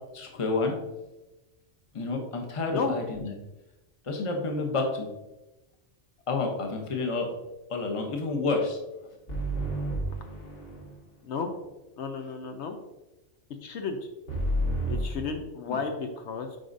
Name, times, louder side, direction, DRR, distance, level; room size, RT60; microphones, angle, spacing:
voice 1, 0.1-0.7 1.9-3.4 4.0-5.1 6.3-7.3 7.7-8.8 15.7-15.8, left 3 dB, 30° left, 2 dB, 0.8 m, -29 dB
sound 1, 9.3-11.0 14.3-15.2, right 1 dB, 55° left, 1.8 m, -30 dB
voice 2, 11.2-11.6 12.0-12.8 13.6-14.0 14.9-16.6, left 5 dB, 70° left, 5 dB, 0.9 m, -32 dB
7.7 x 4.8 x 2.6 m, 1.0 s
omnidirectional pair, 1.2 m